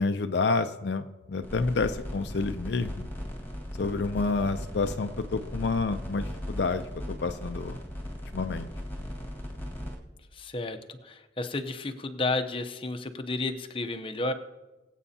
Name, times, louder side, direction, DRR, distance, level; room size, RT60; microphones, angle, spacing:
voice 1, 0.0-3.1 3.8-7.8 8.3-8.7, left 3 dB, 60° left, 8 dB, 0.5 m, -29 dB
sound 1, 1.4-10.0, equal, 10° left, 1.7 m, -38 dB
voice 2, 10.3-14.3, left 2 dB, 30° left, 7 dB, 0.7 m, -32 dB
22.5 x 8.2 x 2.8 m, 1.1 s
head